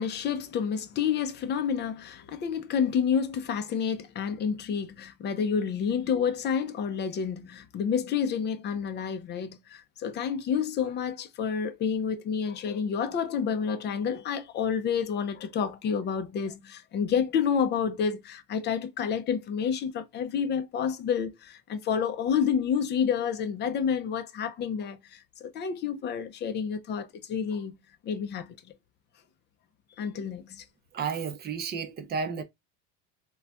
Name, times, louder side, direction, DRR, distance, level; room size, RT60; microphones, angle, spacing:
voice 1, 0.0-27.7 28.0-28.7 30.0-30.6, left 7 dB, 30° left, 0.5 m, -29 dB
voice 2, 30.9-32.4, right 5 dB, 30° right, 0.6 m, -32 dB
3.9 x 2.2 x 2.2 m
cardioid pair, 140°, 35 cm